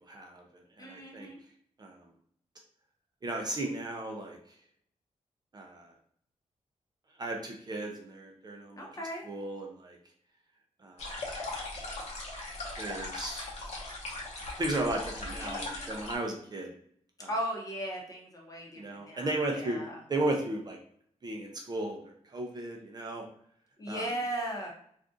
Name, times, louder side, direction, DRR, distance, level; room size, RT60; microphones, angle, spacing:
voice 1, 0.1-0.4 0.8-1.3 1.8-2.0 3.2-4.4 5.5-5.9 7.2-8.9 9.2-10.0 10.8-11.1 12.8-13.4 14.6-16.7 17.2-17.3 18.8-19.8 20.1-20.8 21.2-23.2 23.9-24.1, right 2 dB, 30° right, 1 dB, 0.5 m, -35 dB
voice 2, 0.8-1.4 8.8-9.3 15.4-15.9 17.3-20.0 23.8-24.7, right 1 dB, 25° left, -1 dB, 0.8 m, -37 dB
sound 1, 11.0-16.2, left 2 dB, 60° left, 0.8 m, -39 dB
2.5 x 2.3 x 3.6 m, 0.65 s
wide cardioid pair, 130°, 13 cm